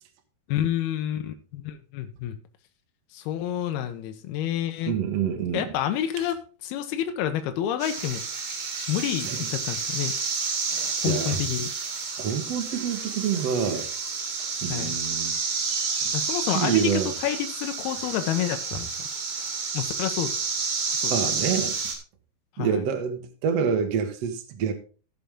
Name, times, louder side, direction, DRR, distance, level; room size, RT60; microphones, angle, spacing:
voice 1, 0.5-2.4 3.1-5.0 5.5-6.4 6.6-8.2 8.9-10.1 11.0-11.7 14.7-15.0 16.1-16.9 17.2-18.9 19.7-20.3 20.9-21.1 22.6-22.8, left 11 dB, 80° left, 6 dB, 2.8 m, -28 dB
voice 2, 4.9-5.7 9.2-9.5 11.0-11.4 12.2-13.9 14.6-15.3 16.0-16.1 16.5-17.1 21.1-21.8 22.6-24.7, right 7 dB, 65° right, 5 dB, 1.6 m, -27 dB
sound 1, 7.8-21.9, right 5 dB, 45° right, 3.5 m, -30 dB
15.5 x 7.0 x 3.6 m, 0.37 s
omnidirectional pair, 4.7 m